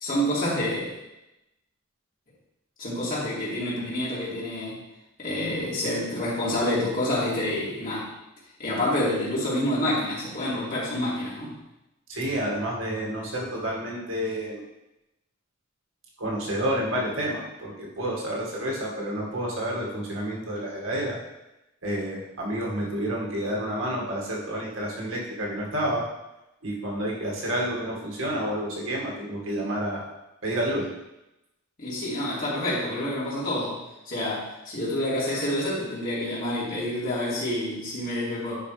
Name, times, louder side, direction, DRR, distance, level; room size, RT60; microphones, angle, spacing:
voice 1, 0.0-0.9 2.8-4.8 5.2-8.1 8.6-11.6 31.8-33.8 34.0-38.6, left 1 dB, 45° left, -8 dB, 3.1 m, -28 dB
voice 2, 12.1-14.6 16.2-21.2 21.8-26.0 26.6-30.1 30.4-30.9, right 1 dB, 75° right, -3 dB, 2.1 m, -29 dB
11.0 x 4.8 x 3.4 m, 0.93 s
head